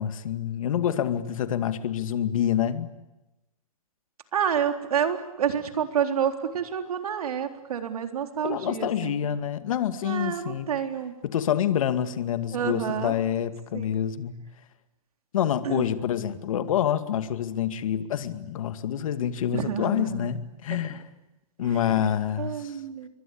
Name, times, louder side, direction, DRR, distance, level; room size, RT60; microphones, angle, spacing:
voice 1, 0.0-2.9 8.4-10.7 11.2-14.4 15.3-21.0 21.6-22.7, left 9 dB, 65° left, 10 dB, 2.2 m, -27 dB
voice 2, 4.3-9.3 10.0-11.2 12.5-13.1 13.7-14.1 15.6-15.9 19.5-20.3 20.7-20.8 21.6-21.8 22.4-23.1, right 8 dB, 80° right, 6 dB, 3.9 m, -29 dB
29.0 x 23.5 x 8.7 m, 1.0 s
hypercardioid pair, 160°, 19 cm